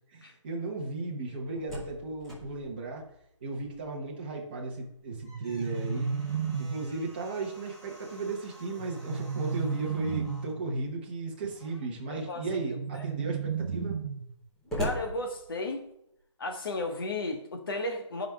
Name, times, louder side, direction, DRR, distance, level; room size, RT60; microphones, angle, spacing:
voice 1, 0.1-3.0 3.4-6.1 6.6-14.0, right 3 dB, 20° right, -2 dB, 0.9 m, -35 dB
Slam, 1.3-4.1 4.4-4.5 4.9-10.6 11.5-12.0 12.6-12.7 12.9-16.0, right 1 dB, ahead, 0.6 m, -44 dB
sound 1, 5.1-7.1 8.8-10.7 12.5-14.5, right 6 dB, 65° right, 0.5 m, -33 dB
voice 2, 12.1-12.4 12.7-12.8 14.8-15.9 16.4-18.3, left 2 dB, 45° left, 4 dB, 1.3 m, -34 dB
13.5 x 5.1 x 2.3 m, 0.76 s
hypercardioid pair, 180°, 16 cm